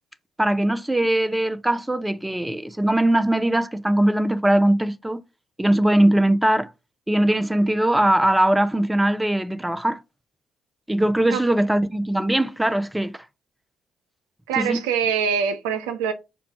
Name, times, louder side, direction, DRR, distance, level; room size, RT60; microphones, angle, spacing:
voice 1, 0.4-5.2 5.6-6.7 7.1-10.0 10.9-13.2 14.6-14.8, right 1 dB, 10° right, 0.5 m, -20 dB
voice 2, 14.5-16.1, right 7 dB, 85° right, 0.5 m, -24 dB
5.0 x 2.4 x 4.5 m
hypercardioid pair, 50°, 0 cm